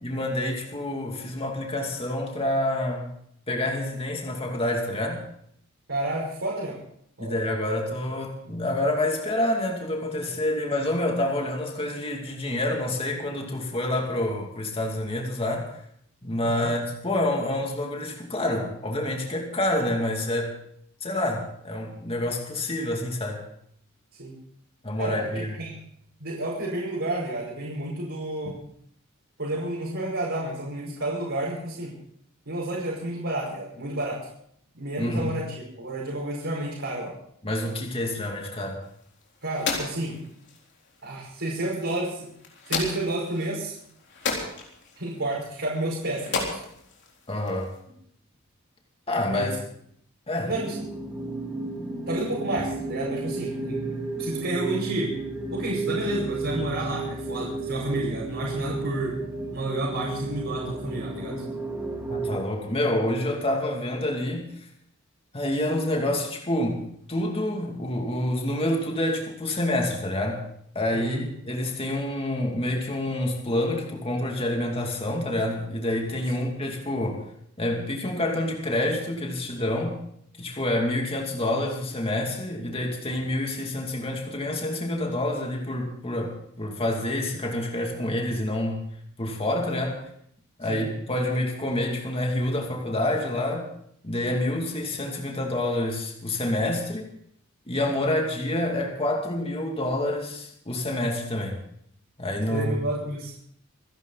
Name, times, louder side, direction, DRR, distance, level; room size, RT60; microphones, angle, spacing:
voice 1, 0.0-3.1 3.5-5.2 7.2-15.7 16.2-20.6 21.0-23.4 24.8-25.6 28.5-28.6 35.0-35.3 37.4-38.8 47.3-47.7 49.1-49.5 50.3-50.5 62.1-64.5 65.3-66.8 67.1-70.4 70.7-77.2 77.6-80.0 80.4-88.8 89.2-90.0 90.6-93.7 94.0-97.1 97.7-101.6 102.2-102.8, left 1 dB, 25° left, 1 dB, 2.5 m, -27 dB
voice 2, 5.9-6.8 7.2-7.4 16.4-16.7 24.2-24.3 25.0-25.7 26.2-28.6 29.4-32.0 32.5-34.2 34.7-37.1 39.4-40.2 41.0-42.3 42.7-43.8 45.0-46.6 49.3-49.5 50.5-51.0 52.1-55.1 55.5-59.2 59.5-61.4 70.9-71.2 76.3-76.5 90.7-90.8 102.5-103.3, right 1 dB, 60° right, -6 dB, 5.5 m, -30 dB
sound 1, 38.8-47.8, left 4 dB, 55° left, 3.9 m, -35 dB
sound 2, 50.5-62.4, right 3 dB, 10° right, 3.2 m, -32 dB
27.0 x 11.0 x 4.1 m, 0.68 s
head